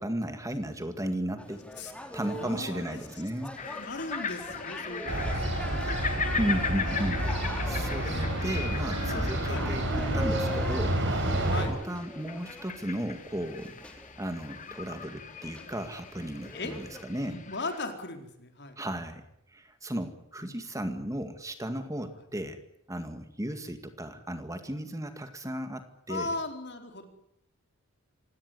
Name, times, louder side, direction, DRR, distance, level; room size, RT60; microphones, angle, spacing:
voice 1, 0.0-1.6 2.1-3.6 6.4-11.3 11.7-13.8 14.2-17.4 18.8-19.2 19.5-22.6 22.9-26.3, right 1 dB, 15° right, 8 dB, 2.0 m, -35 dB
sound 1, 1.4-17.0, left 1 dB, 5° left, 3.4 m, -43 dB
voice 2, 2.2-3.0 3.6-6.0 8.0-8.3 9.0-9.6 11.5-11.7 16.5-16.7 17.1-18.8 26.1-27.1, left 2 dB, 55° left, 5 dB, 4.5 m, -38 dB
sound 2, 3.6-17.8, left 6 dB, 40° left, 2.0 m, -39 dB
sound 3, 5.1-11.6, right 1 dB, 60° right, 7.5 m, -29 dB
27.0 x 17.5 x 9.8 m, 0.77 s
head